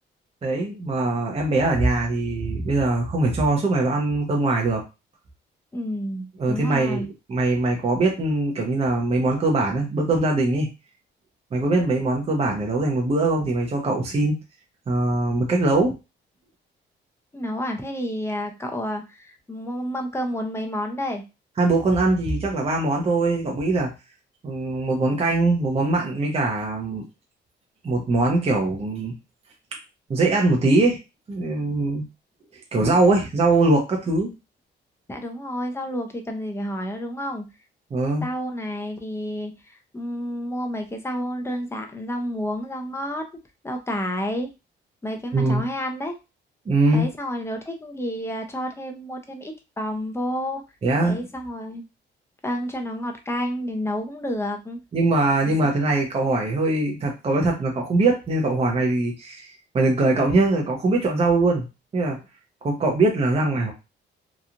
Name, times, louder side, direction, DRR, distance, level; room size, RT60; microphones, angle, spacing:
voice 1, 0.4-4.8 6.4-10.7 11.5-14.3 14.9-15.9 21.6-23.9 24.4-27.0 27.8-29.1 30.1-31.0 31.3-32.0 32.7-34.3 37.9-38.2 45.3-45.6 46.7-47.1 50.8-51.3 54.9-61.6 61.9-62.2 62.6-63.7, right 2 dB, 30° right, 0 dB, 0.7 m, -22 dB
voice 2, 5.7-7.1 17.3-21.2 35.1-37.5 38.2-43.2 43.6-44.5 45.0-46.1 46.9-50.6 51.0-51.8 52.4-54.8 55.5-55.6, equal, 15° left, 4 dB, 0.6 m, -30 dB
3.0 x 2.3 x 2.5 m, 0.27 s
cardioid pair, 90°, 20 cm